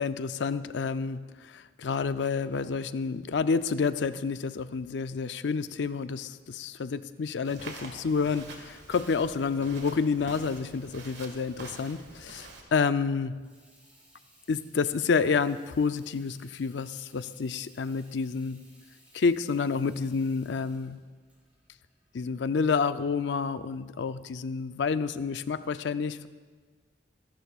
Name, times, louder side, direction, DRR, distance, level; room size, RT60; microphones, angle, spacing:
voice 1, 0.0-13.4 14.5-18.6 19.1-21.0 22.1-26.3, left 5 dB, 75° left, 12 dB, 0.5 m, -29 dB
Walk footsteps, 7.4-12.6, right 2 dB, 65° right, 1.8 m, -46 dB
Water tap faucet / Sink (filling or washing), 13.2-22.7, equal, 10° right, 4.7 m, -61 dB
25.5 x 11.5 x 2.4 m, 1.4 s
head